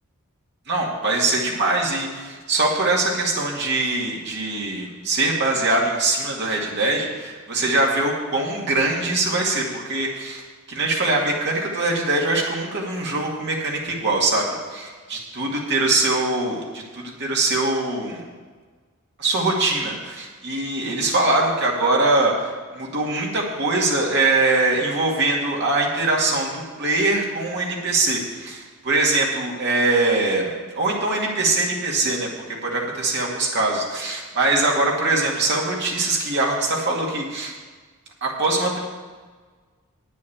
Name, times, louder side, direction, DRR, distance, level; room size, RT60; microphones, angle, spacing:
voice 1, 0.7-10.4 10.7-18.2 19.2-32.3 32.6-37.5 38.2-38.8, right 2 dB, 50° right, -2 dB, 2.2 m, -22 dB
9.3 x 6.4 x 8.7 m, 1.4 s
head